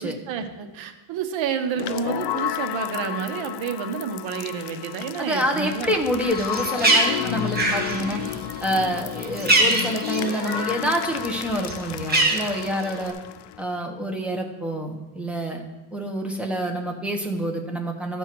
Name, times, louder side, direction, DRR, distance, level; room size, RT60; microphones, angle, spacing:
voice 1, 0.0-6.0, right 7 dB, 75° right, 7 dB, 1.1 m, -29 dB
sound 1, 1.7-13.6, left 13 dB, 60° left, 0.5 m, -32 dB
voice 2, 5.2-8.2 8.6-13.1 13.6-15.6 15.9-18.2, equal, 5° right, 1 dB, 1.2 m, -27 dB
Bird, 6.2-10.9 11.2-13.1, right 2 dB, 20° right, 1.6 m, -24 dB
13.0 x 4.5 x 6.1 m, 1.1 s
cardioid pair, 140°, 46 cm